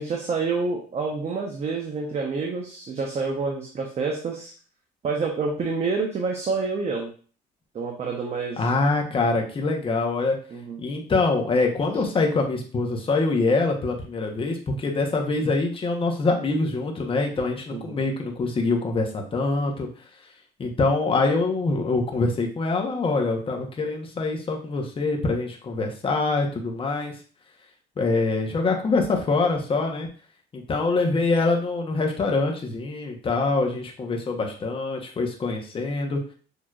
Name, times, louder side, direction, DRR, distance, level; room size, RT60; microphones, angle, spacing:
voice 1, 0.0-4.5 5.0-7.1 7.7-8.7 10.5-10.8 17.7-18.0, right 4 dB, 40° right, 0 dB, 0.9 m, -28 dB
voice 2, 8.6-10.4 10.8-19.9 20.6-27.1 28.0-30.1 30.5-36.2, left 3 dB, 30° left, 2 dB, 1.1 m, -24 dB
6.5 x 3.0 x 2.5 m, 0.40 s
cardioid pair, 110°, 17 cm